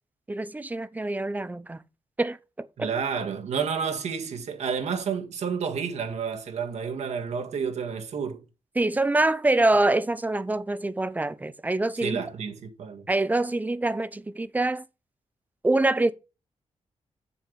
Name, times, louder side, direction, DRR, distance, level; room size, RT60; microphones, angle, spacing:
voice 1, 0.3-1.8 2.2-2.9 8.8-12.2 13.1-14.8 15.6-16.1, right 2 dB, 15° right, 0.6 m, -25 dB
voice 2, 2.8-8.4 12.0-13.1, right 6 dB, 75° right, 1.8 m, -30 dB
7.6 x 7.2 x 5.2 m
wide cardioid pair, 150°, 12 cm